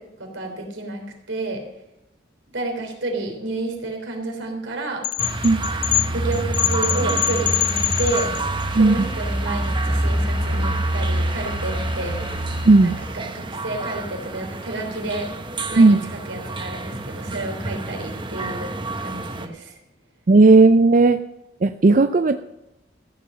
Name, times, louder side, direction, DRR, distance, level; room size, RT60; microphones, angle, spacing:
voice 1, 0.2-1.0 1.3-1.6 2.5-5.0 6.1-8.3 8.7-12.2 12.8-15.3 15.7-16.0 16.2-18.7 19.0-19.8, right 2 dB, 85° right, 2 dB, 3.4 m, -30 dB
sound 1, 5.0-8.6, left 16 dB, 45° left, 0.4 m, -24 dB
sound 2, 5.2-19.5, right 1 dB, 25° right, 0.9 m, -27 dB
sound 3, 7.2-13.3, left 2 dB, 65° left, 2.8 m, -38 dB
voice 2, 8.7-9.1 12.6-12.9 15.8-16.0 20.3-21.2 21.6-22.4, right 3 dB, 45° right, 9 dB, 0.5 m, -14 dB
14.5 x 7.7 x 6.4 m, 0.93 s
head